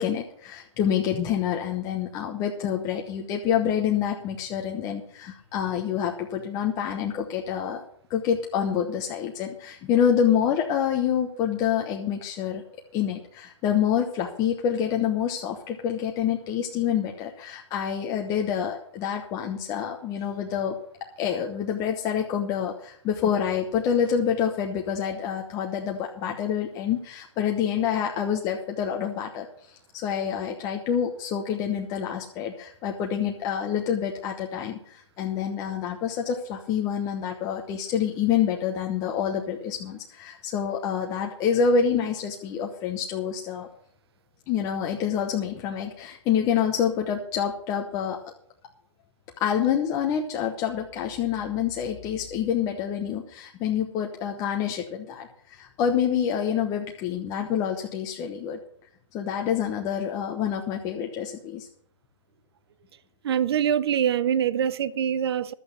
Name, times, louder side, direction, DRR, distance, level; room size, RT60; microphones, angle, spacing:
voice 1, 0.0-7.8 8.1-12.6 12.9-20.8 21.2-29.5 29.9-43.7 44.5-48.2 49.4-58.6 59.1-61.7, left 8 dB, 20° left, 1.0 m, -27 dB
voice 2, 63.2-65.5, right 9 dB, 50° right, 0.7 m, -24 dB
12.0 x 8.0 x 6.7 m
hypercardioid pair, 145°, 16 cm